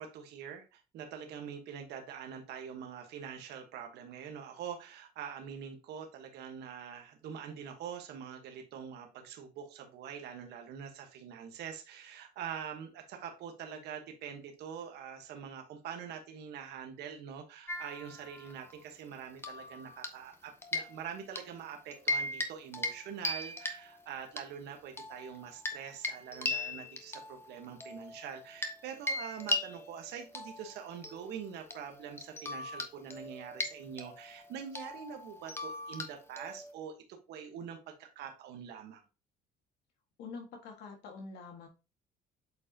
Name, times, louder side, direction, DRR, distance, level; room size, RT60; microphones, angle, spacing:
voice 1, 0.0-37.0 37.3-39.0, right 8 dB, 80° right, 4 dB, 1.3 m, -44 dB
sound 1, 17.7-18.7 19.4-20.3 20.6-21.5 21.9-22.5 22.7-23.0 23.2-24.4 25.0-28.8 29.1-36.7, left 2 dB, 15° left, 1.1 m, -38 dB
voice 2, 40.2-41.7, left 4 dB, 80° left, 3 dB, 1.8 m, -46 dB
8.2 x 4.7 x 2.8 m, 0.30 s
cardioid pair, 110°, 17 cm